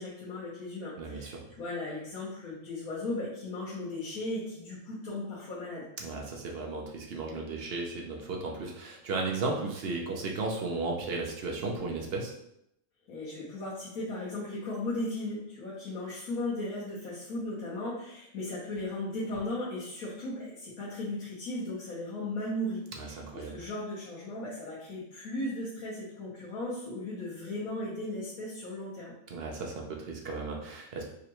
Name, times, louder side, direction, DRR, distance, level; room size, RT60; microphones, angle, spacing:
voice 1, 0.0-5.9 13.1-29.1, left 1 dB, 85° left, -8 dB, 1.4 m, -36 dB
voice 2, 1.0-1.4 6.0-12.3 23.0-23.6 29.3-31.0, right 3 dB, 55° right, 0 dB, 0.8 m, -35 dB
4.9 x 2.2 x 3.0 m, 0.77 s
omnidirectional pair, 1.5 m